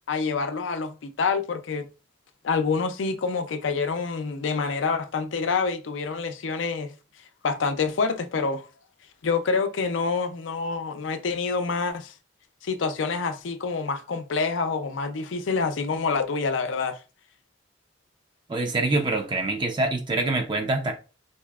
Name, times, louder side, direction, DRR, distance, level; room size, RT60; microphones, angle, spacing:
voice 1, 0.1-1.9 2.4-6.9 7.4-8.7 9.2-12.1 12.6-17.0, left 4 dB, 85° left, 0.5 m, -27 dB
voice 2, 18.5-20.9, right 2 dB, 25° right, 0.3 m, -25 dB
4.0 x 2.7 x 2.3 m
head